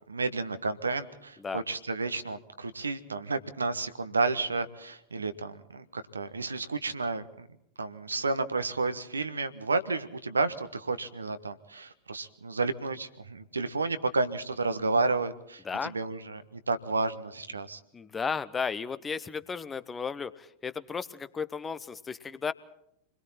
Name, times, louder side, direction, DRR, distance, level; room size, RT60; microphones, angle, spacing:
voice 1, 0.1-7.5 7.8-17.8, right 3 dB, 75° right, 11 dB, 1.3 m, -31 dB
voice 2, 15.6-15.9 17.9-22.5, left 5 dB, 15° left, 14 dB, 1.0 m, -34 dB
27.5 x 22.0 x 4.3 m, 0.75 s
figure-of-eight pair, 90°, 0 cm